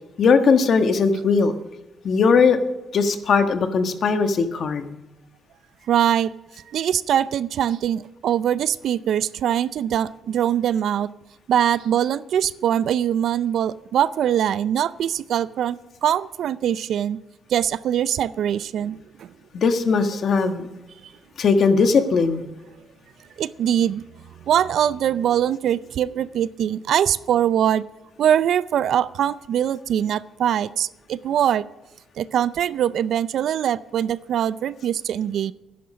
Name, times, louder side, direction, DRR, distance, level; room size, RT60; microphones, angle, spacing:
voice 1, 0.2-1.5 2.0-2.6 2.9-4.9 19.5-20.7 21.4-22.4, left 5 dB, 55° left, 7 dB, 1.4 m, -19 dB
voice 2, 5.9-6.3 6.7-11.1 11.5-17.2 17.5-19.3 23.4-24.0 24.5-27.8 28.2-31.6 32.2-35.5, right 10 dB, 70° right, 18 dB, 0.4 m, -22 dB
11.0 x 10.5 x 6.4 m, 0.99 s
cardioid pair, 90°, 0 cm